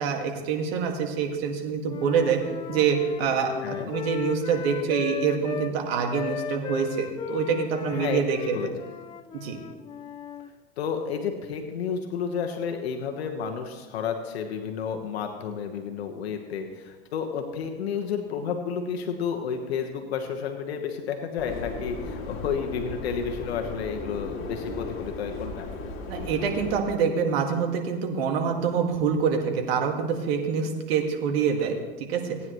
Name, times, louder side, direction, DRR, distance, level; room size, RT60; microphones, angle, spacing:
voice 1, 0.0-2.4 2.7-8.6 9.3-9.6 26.1-31.8 32.1-32.4, right 6 dB, 70° right, 3 dB, 2.0 m, -26 dB
Wind instrument woodwind instrument, 1.8-5.7 6.1-10.5, left 9 dB, 15° left, 0.3 m, -36 dB
voice 2, 3.6-3.9 7.9-8.7 10.8-25.7, left 7 dB, 85° left, 4 dB, 1.3 m, -31 dB
Subway metro underground, 21.4-26.8, left 2 dB, 40° left, 2.2 m, -36 dB
18.5 x 9.6 x 3.1 m, 1.3 s
supercardioid pair, 120°, 31 cm